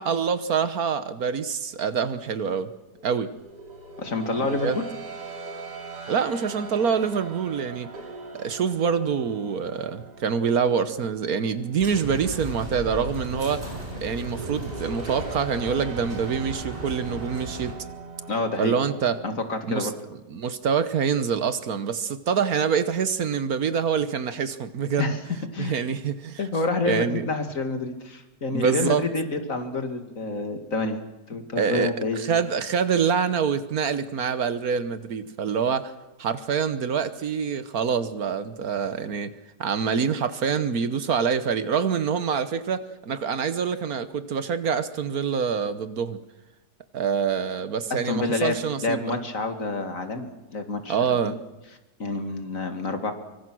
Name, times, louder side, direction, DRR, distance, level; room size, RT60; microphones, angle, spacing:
voice 1, 0.0-2.7 3.0-3.3 4.5-4.8 6.1-7.9 8.3-13.6 14.0-17.8 18.6-19.2 19.7-19.9 20.3-25.1 25.6-26.5 26.8-27.3 28.5-29.0 31.6-35.9 36.2-39.3 39.6-46.2 46.9-49.2 50.9-51.4, right 6 dB, 60° right, 12 dB, 1.5 m, -26 dB
sound 1, 2.9-19.3, right 3 dB, 80° right, 3.2 m, -41 dB
voice 2, 4.0-4.8 18.3-18.8 19.2-19.9 25.0-25.2 25.5-25.7 26.4-31.0 31.3-32.2 47.9-48.6 48.8-51.4 52.0-53.1, left 3 dB, 50° left, 7 dB, 2.5 m, -28 dB
sound 2, 11.8-17.7, right 1 dB, 30° right, 6.0 m, -36 dB
25.0 x 24.0 x 6.2 m, 1.0 s
omnidirectional pair, 1.8 m